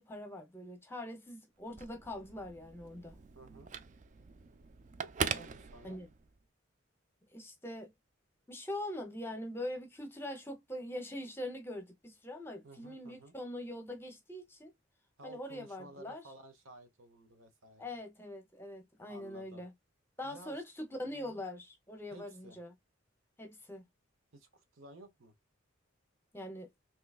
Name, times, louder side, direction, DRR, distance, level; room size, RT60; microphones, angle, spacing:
voice 1, 0.0-3.1 5.8-6.1 7.3-7.9 8.5-14.7 15.2-16.2 17.8-19.7 20.2-22.7 23.4-23.8 26.3-26.7, left 1 dB, 10° left, 0.8 m, -43 dB
Telephone, 1.6-6.4, right 6 dB, 35° right, 0.3 m, -41 dB
voice 2, 3.3-3.7 5.2-6.0 12.6-13.3 15.2-17.9 19.1-19.6 20.2-20.6 21.1-21.4 22.1-22.6 24.3-25.3, right 1 dB, 75° right, 1.1 m, -54 dB
3.8 x 2.9 x 2.4 m
head